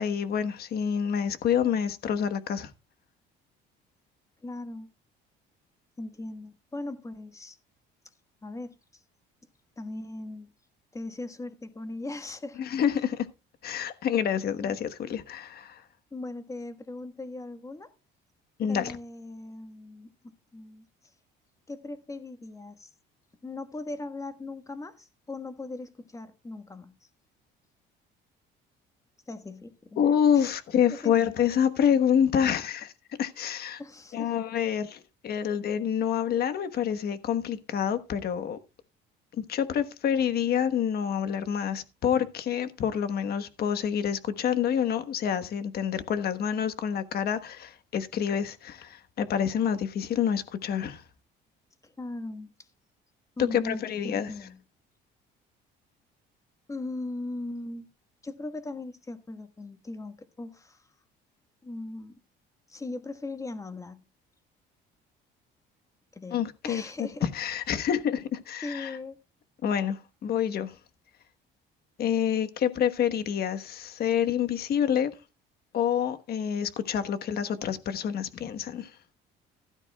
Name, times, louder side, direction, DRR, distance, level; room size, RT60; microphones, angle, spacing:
voice 1, 0.0-2.7 12.6-13.3 13.6-15.8 18.6-19.0 30.0-32.9 33.2-33.8 34.1-38.6 39.4-51.0 53.4-54.3 66.3-66.8 67.2-69.0 69.6-70.8 72.0-75.1 75.7-78.9, left 8 dB, 50° left, 1.3 m, -27 dB
voice 2, 4.4-4.9 6.0-7.6 8.4-9.0 9.8-10.5 10.9-12.6 14.6-14.8 16.1-17.9 18.7-20.1 20.5-20.8 21.7-22.9 23.4-26.9 29.3-30.0 30.3-30.6 30.9-31.1 33.8-34.3 51.8-52.7 53.4-54.6 56.7-57.9 58.2-60.9 61.6-62.2 62.7-64.0 66.1-67.2 68.6-69.2, left 2 dB, 15° left, 1.4 m, -39 dB
15.5 x 12.5 x 2.3 m
cardioid pair, 125°, 20 cm